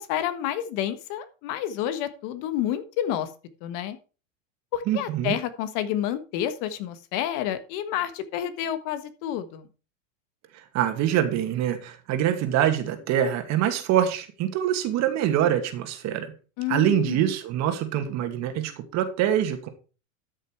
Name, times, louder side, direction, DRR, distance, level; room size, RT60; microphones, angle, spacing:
voice 1, 0.0-3.3 3.6-4.0 4.7-9.7 16.6-17.2, left 11 dB, 50° left, 11 dB, 1.5 m, -29 dB
voice 2, 4.9-5.3 10.7-16.3 16.7-19.7, right 10 dB, 45° right, 7 dB, 2.3 m, -24 dB
13.0 x 6.5 x 4.7 m, 0.34 s
supercardioid pair, 130°, 39 cm